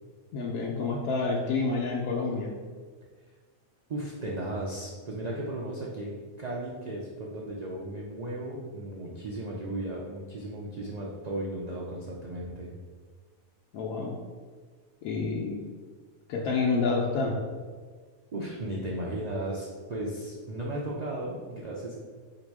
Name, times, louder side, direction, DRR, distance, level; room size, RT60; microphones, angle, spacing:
voice 1, 0.3-2.5 13.7-14.2 15.0-15.6 16.3-17.4, left 4 dB, 85° left, -2 dB, 1.0 m, -28 dB
voice 2, 3.9-12.7 18.3-22.0, right 1 dB, 65° right, -3 dB, 0.4 m, -35 dB
4.0 x 2.9 x 4.6 m, 1.5 s
omnidirectional pair, 1.5 m